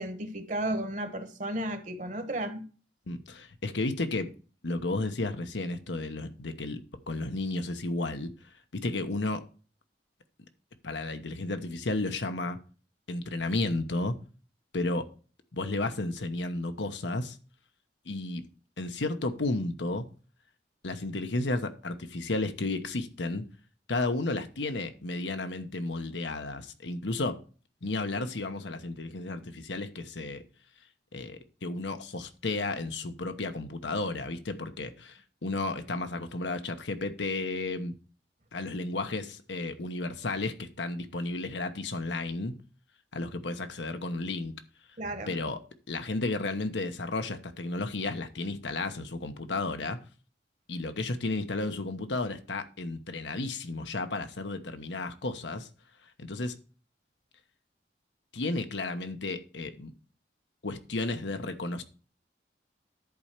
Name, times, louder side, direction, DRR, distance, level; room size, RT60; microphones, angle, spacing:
voice 1, 0.0-2.6 45.0-45.3, right 1 dB, 45° right, 8 dB, 1.2 m, -33 dB
voice 2, 3.1-4.3 4.6-8.3 8.7-9.4 10.8-12.6 13.1-14.2 14.7-15.1 15.5-17.4 18.1-18.4 18.8-20.0 20.8-23.5 23.9-27.4 27.8-30.4 31.1-37.9 38.5-42.5 43.1-44.5 45.3-45.6 45.9-50.0 50.7-55.7 56.2-56.5 58.3-59.9 60.6-61.8, left 2 dB, 85° left, 8 dB, 1.1 m, -33 dB
11.0 x 4.4 x 6.6 m, 0.37 s
head